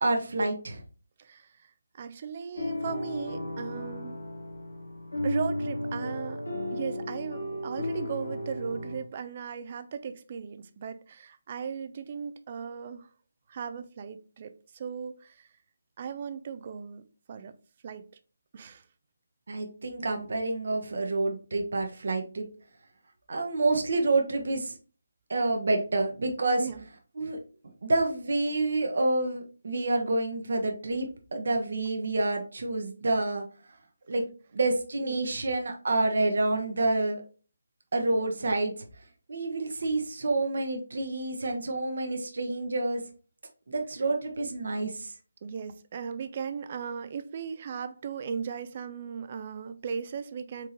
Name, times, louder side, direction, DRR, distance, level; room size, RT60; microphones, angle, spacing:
voice 1, 0.0-0.8 19.5-22.4 23.3-24.7 25.3-26.6 27.2-27.4 27.8-33.4 34.1-34.2 34.5-37.2 37.9-38.7 39.3-43.0 43.7-45.1, right 2 dB, 60° right, 1.0 m, -28 dB
voice 2, 1.2-4.2 5.2-6.4 6.7-13.1 13.5-15.5 16.0-17.6 17.8-18.1 18.5-18.8 26.6-26.8 35.0-35.2 45.4-50.7, right 6 dB, 35° right, 0.5 m, -37 dB
sound 1, 2.5-9.0, left 1 dB, 80° left, 1.4 m, -34 dB
4.7 x 3.7 x 2.9 m
figure-of-eight pair, 155°, 0 cm